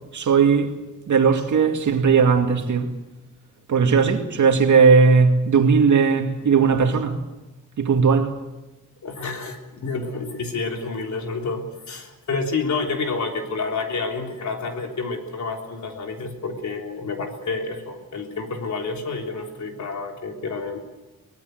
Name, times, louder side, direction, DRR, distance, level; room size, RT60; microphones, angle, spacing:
voice 1, 0.1-0.8 1.1-2.9 3.7-7.2 7.8-8.4, right 5 dB, 60° right, 2.3 m, -17 dB
voice 2, 9.0-20.8, left 4 dB, 60° left, 3.6 m, -29 dB
23.5 x 18.5 x 7.9 m
wide cardioid pair, 130°, 33 cm